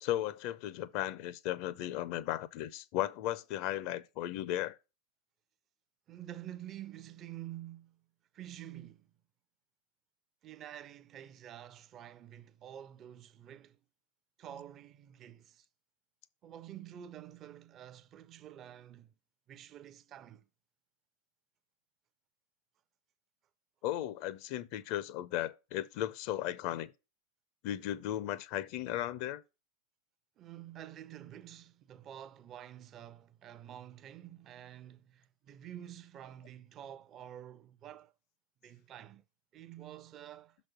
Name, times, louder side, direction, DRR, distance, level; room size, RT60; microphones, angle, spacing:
voice 1, 0.0-4.8 23.8-26.9 27.6-29.4, left 13 dB, 45° left, 0.5 m, -36 dB
voice 2, 6.1-8.0 8.3-9.1 10.4-13.8 14.4-15.7 16.4-19.1 19.5-20.5 30.4-38.1 38.6-39.2 39.5-40.6, right 11 dB, 30° right, 0.5 m, -49 dB
6.3 x 4.1 x 6.0 m
figure-of-eight pair, 90°, 0 cm